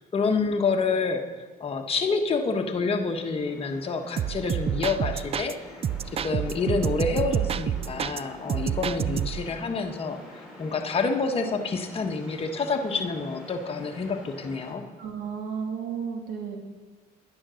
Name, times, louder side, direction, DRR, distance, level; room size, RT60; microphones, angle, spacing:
voice 1, 0.1-1.2 1.6-5.9 6.2-14.8, left 4 dB, 35° left, 4 dB, 1.3 m, -28 dB
sound 1, 3.0-14.7, left 1 dB, 5° right, 3.8 m, -46 dB
sound 2, 4.2-5.5 5.8-8.2 8.5-9.5, right 9 dB, 35° right, 0.4 m, -28 dB
voice 2, 15.0-16.6, right 6 dB, 60° right, 2 dB, 2.4 m, -33 dB
10.5 x 9.6 x 6.4 m, 1.3 s
cardioid pair, 110°, 17 cm